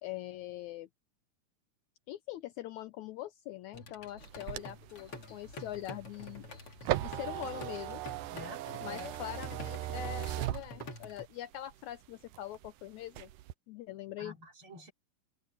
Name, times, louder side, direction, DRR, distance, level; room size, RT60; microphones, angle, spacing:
voice 1, 0.0-0.9 2.1-6.5 7.0-8.0 8.8-13.3 13.7-14.4, left 14 dB, 75° left, 1.9 m, -43 dB
sound 1, 3.7-11.3, left 2 dB, 45° left, 3.5 m, -48 dB
sound 2, 4.2-11.3 11.7-12.7 13.1-13.5, right 15 dB, 85° right, 2.3 m, -38 dB
voice 2, 8.3-9.1 14.2-14.9, left 2 dB, 40° right, 4.1 m, -47 dB
omnidirectional pair, 3.7 m